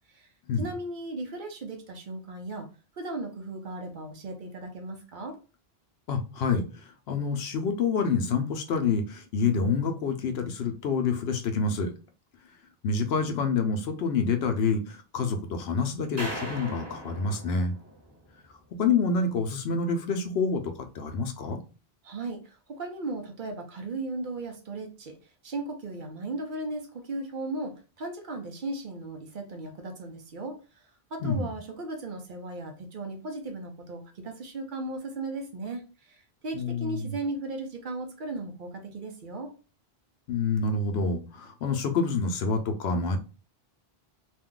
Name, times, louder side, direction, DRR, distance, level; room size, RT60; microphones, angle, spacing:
voice 1, 0.6-2.7 2.9-5.4 22.0-25.2 25.4-39.5, right 2 dB, 60° right, 4 dB, 0.7 m, -36 dB
voice 2, 6.1-11.9 12.8-17.7 18.8-21.6 31.2-31.5 36.5-37.1 40.3-43.2, left 4 dB, 80° left, 6 dB, 0.8 m, -27 dB
sound 1, 16.2-18.5, right 1 dB, 15° right, 0.9 m, -39 dB
2.5 x 2.2 x 3.6 m, 0.34 s
omnidirectional pair, 1.0 m